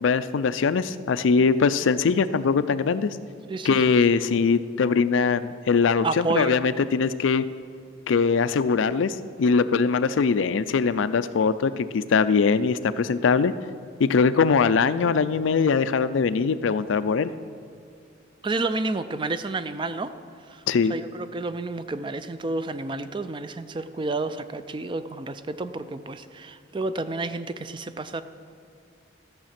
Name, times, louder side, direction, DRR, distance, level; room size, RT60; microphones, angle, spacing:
voice 1, 0.0-3.2 3.6-7.4 8.1-13.5 14.0-17.3 20.7-21.0, left 5 dB, 85° left, 14 dB, 0.4 m, -22 dB
voice 2, 3.5-3.8 6.0-6.6 18.4-20.1 20.5-20.6 20.9-28.2, right 3 dB, 25° right, 12 dB, 0.4 m, -30 dB
14.0 x 7.3 x 5.9 m, 2.3 s
head